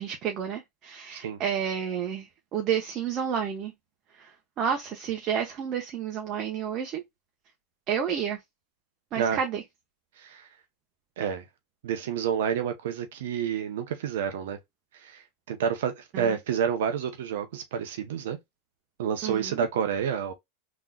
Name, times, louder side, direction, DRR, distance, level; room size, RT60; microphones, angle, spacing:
voice 1, 0.0-3.7 4.2-7.0 7.9-8.4 9.1-9.6 16.1-16.4 19.2-19.7, right 8 dB, 40° right, 1.0 m, -30 dB
voice 2, 10.2-10.5 11.2-11.4 11.8-14.6 15.0-18.4 19.0-20.3, right 8 dB, 75° right, 0.8 m, -29 dB
3.7 x 3.1 x 2.3 m
hypercardioid pair, 110°, 0 cm